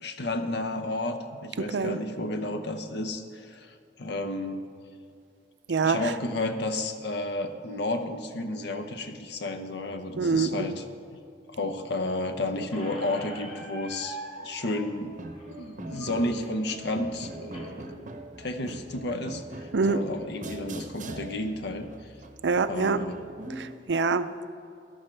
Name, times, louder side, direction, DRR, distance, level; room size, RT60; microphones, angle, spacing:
voice 1, 0.0-4.6 5.8-10.8 11.5-15.1 15.5-18.1 18.4-21.9 22.7-23.2, left 2 dB, 70° left, 7 dB, 0.8 m, -32 dB
voice 2, 1.6-2.0 5.7-6.0 10.2-10.7 19.7-20.0 22.4-23.0 23.6-24.5, right 4 dB, 75° right, 12 dB, 0.5 m, -25 dB
Squeak, 12.7-17.7, right 1 dB, 30° left, 2.0 m, -43 dB
sound 1, 15.1-23.7, right 1 dB, 45° right, 0.8 m, -42 dB
13.5 x 12.0 x 3.3 m, 2.6 s
head